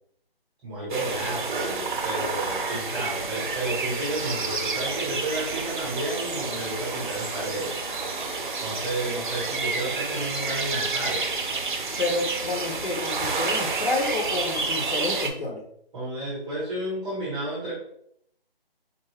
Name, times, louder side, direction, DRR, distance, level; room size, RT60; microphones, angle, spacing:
voice 1, 0.6-7.7 8.6-11.3 15.9-17.7, right 1 dB, 5° right, -9 dB, 0.9 m, -31 dB
sound 1, 0.9-15.3, right 4 dB, 55° right, 0.6 m, -29 dB
voice 2, 12.0-15.6, left 2 dB, 65° left, -2 dB, 1.2 m, -29 dB
4.3 x 2.2 x 3.3 m, 0.71 s
figure-of-eight pair, 165°, 30 cm